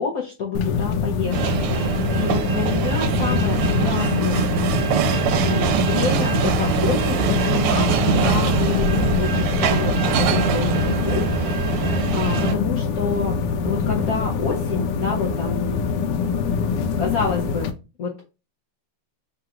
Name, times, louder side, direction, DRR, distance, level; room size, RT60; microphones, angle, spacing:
voice 1, 0.0-4.5 5.4-11.7 12.1-13.4 13.6-15.9 17.0-17.7 18.0-18.3, left 6 dB, 65° left, -1 dB, 0.9 m, -28 dB
sound 1, 0.5-17.7, left 5 dB, 85° left, 1.5 m, -24 dB
sound 2, 1.3-12.6, right 8 dB, 80° right, 1.5 m, -23 dB
3.8 x 2.5 x 4.3 m, 0.30 s
omnidirectional pair, 2.4 m